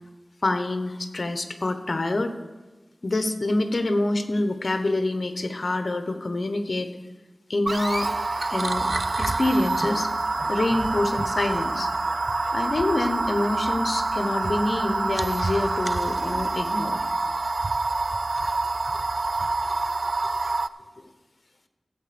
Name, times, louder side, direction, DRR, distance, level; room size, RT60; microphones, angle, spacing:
voice 1, 0.4-2.4 3.0-6.9 7.5-8.1 8.5-8.9 9.2-10.1 10.5-11.9 12.5-17.1, left 2 dB, 65° left, 8 dB, 0.9 m, -26 dB
sound 1, 7.7-20.7, right 3 dB, 60° right, 0.3 m, -26 dB
15.0 x 7.6 x 5.1 m, 1.3 s
wide cardioid pair, 45°, 0 cm